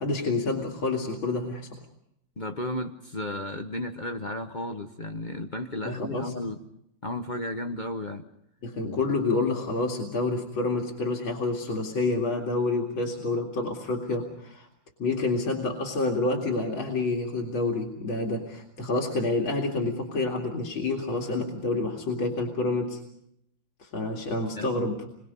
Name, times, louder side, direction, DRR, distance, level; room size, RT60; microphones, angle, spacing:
voice 1, 0.0-1.7 5.8-6.3 8.6-14.7 15.0-23.0 23.8-25.0, left 3 dB, 70° left, 0 dB, 3.1 m, -28 dB
voice 2, 2.4-6.6 7.0-8.2 8.8-9.1 24.5-24.7, left 1 dB, 40° left, 6 dB, 0.7 m, -33 dB
28.5 x 22.5 x 5.4 m, 0.76 s
omnidirectional pair, 2.3 m